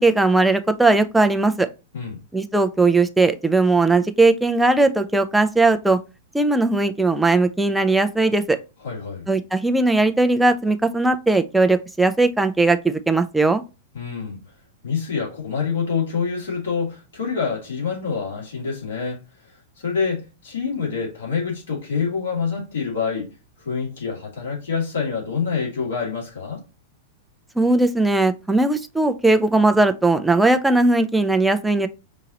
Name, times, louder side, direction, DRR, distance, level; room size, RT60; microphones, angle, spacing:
voice 1, 0.0-1.7 2.3-6.0 6.3-8.6 9.3-13.6 27.6-31.9, right 2 dB, 5° right, 0.5 m, -18 dB
voice 2, 8.8-9.3 13.9-14.4 14.8-19.2 19.8-23.3 23.6-26.6, left 5 dB, 70° left, 2.5 m, -26 dB
5.2 x 2.8 x 2.9 m
figure-of-eight pair, 100°, 0 cm